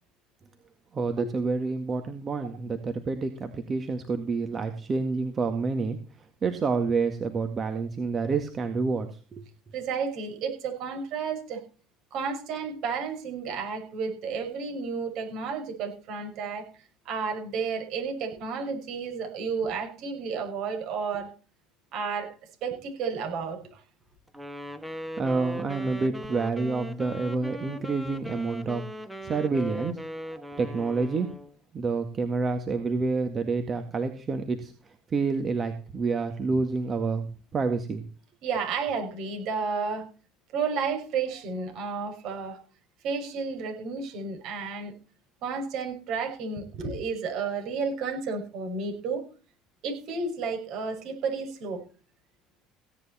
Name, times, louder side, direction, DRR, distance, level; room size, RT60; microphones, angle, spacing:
voice 1, 0.9-6.0 6.4-9.4 25.2-28.9 29.2-30.0 30.6-31.3 31.7-38.0, right 4 dB, 35° right, 7 dB, 2.0 m, -28 dB
voice 2, 9.7-11.6 12.1-16.7 17.0-21.3 21.9-22.3 22.6-23.8 30.5-30.6 38.4-40.0 40.5-42.6 43.0-44.9 45.4-49.2 49.8-51.8, right 5 dB, 65° right, 3 dB, 6.2 m, -32 dB
Wind instrument woodwind instrument, 24.3-31.6, right 1 dB, 5° right, 1.8 m, -38 dB
16.5 x 10.0 x 4.3 m, 0.37 s
hypercardioid pair, 75°, 0 cm